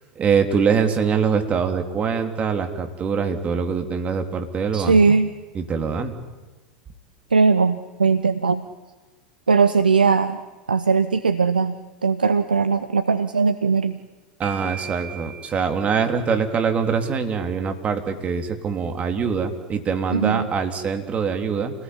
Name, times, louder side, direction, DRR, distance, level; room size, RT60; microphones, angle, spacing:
voice 1, 0.2-5.2 5.6-6.1 14.4-21.7, right 6 dB, 30° right, 5 dB, 3.5 m, -23 dB
voice 2, 4.7-5.3 7.3-8.6 9.5-10.4 10.7-14.0 20.1-20.5, right 5 dB, 85° right, 11 dB, 0.9 m, -19 dB
sound 1, 14.4-16.5, right 7 dB, 55° right, 5.4 m, -39 dB
28.5 x 20.0 x 9.8 m, 1.2 s
figure-of-eight pair, 85°, 5 cm